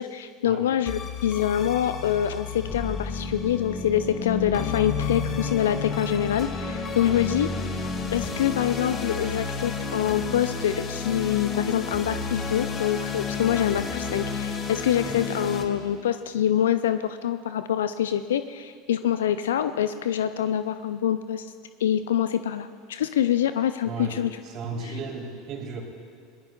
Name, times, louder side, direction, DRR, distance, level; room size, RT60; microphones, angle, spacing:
voice 1, 0.0-7.5 8.1-21.5 21.8-24.4 24.8-25.0, left 10 dB, 75° left, 11 dB, 0.4 m, -25 dB
sound 1, 0.9-15.6, left 4 dB, 35° left, 1.7 m, -31 dB
voice 2, 23.8-25.8, right 4 dB, 50° right, 0 dB, 3.3 m, -35 dB
22.0 x 19.0 x 2.3 m, 2.1 s
hypercardioid pair, 80°, 0 cm